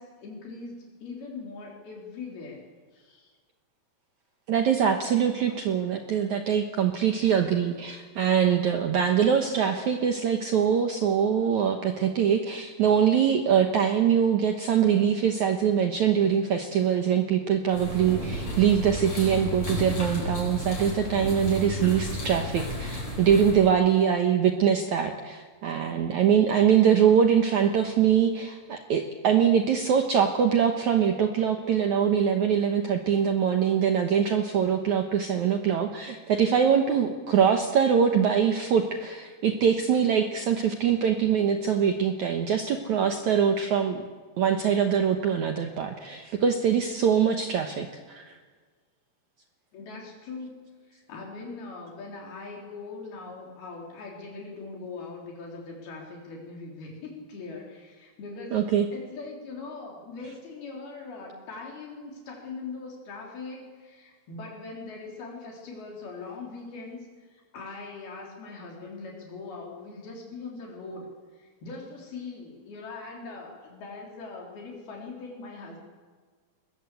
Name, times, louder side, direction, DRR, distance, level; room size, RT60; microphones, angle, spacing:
voice 1, 0.0-2.7 2.9-3.3 49.7-50.6 50.9-58.6 58.9-71.1 71.4-75.8, left 3 dB, 65° left, -1 dB, 5.6 m, -41 dB
voice 2, 4.5-44.0 44.4-48.4 58.5-58.9, right 8 dB, 65° right, 5 dB, 2.1 m, -23 dB
sound 1, 17.7-23.7, left 1 dB, 30° left, 7.7 m, -33 dB
22.0 x 21.0 x 8.4 m, 1.5 s
omnidirectional pair, 4.7 m